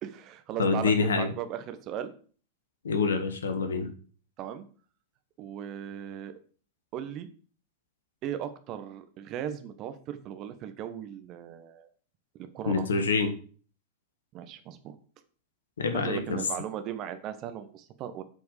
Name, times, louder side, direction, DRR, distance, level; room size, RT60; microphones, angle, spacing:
voice 1, 0.0-2.1 4.4-4.6 5.4-6.3 6.9-7.3 8.2-11.9 12.5-13.1 14.3-15.0 15.9-18.2, right 9 dB, 35° right, 10 dB, 1.2 m, -37 dB
voice 2, 0.6-1.3 2.8-3.9 12.7-13.3 15.8-16.4, left 4 dB, 70° left, 7 dB, 1.6 m, -26 dB
8.3 x 5.1 x 6.7 m, 0.42 s
figure-of-eight pair, 90°, 0 cm